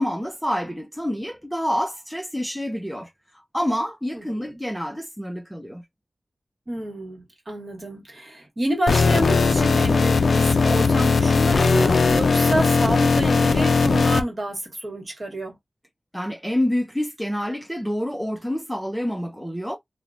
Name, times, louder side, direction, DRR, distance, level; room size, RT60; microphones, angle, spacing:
voice 1, 0.0-3.1 3.5-5.8 16.1-19.8, equal, ahead, 0.4 m, -27 dB
voice 2, 4.1-4.6 6.7-15.6, right 1 dB, 40° right, 1.1 m, -28 dB
sound 1, 8.9-14.2, left 4 dB, 80° left, 0.3 m, -18 dB
2.9 x 2.0 x 2.4 m
wide cardioid pair, 95°, 0 cm